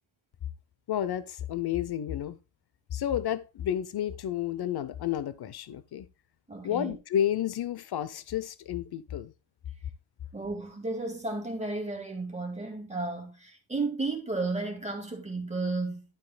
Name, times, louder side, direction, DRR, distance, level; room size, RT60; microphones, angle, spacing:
voice 1, 0.9-2.4 2.9-6.1 6.6-9.3, left 10 dB, 50° left, 0.7 m, -31 dB
voice 2, 6.5-7.0 10.3-16.0, right 3 dB, 15° right, 2.2 m, -33 dB
11.5 x 8.3 x 2.3 m
wide cardioid pair, 145°, 49 cm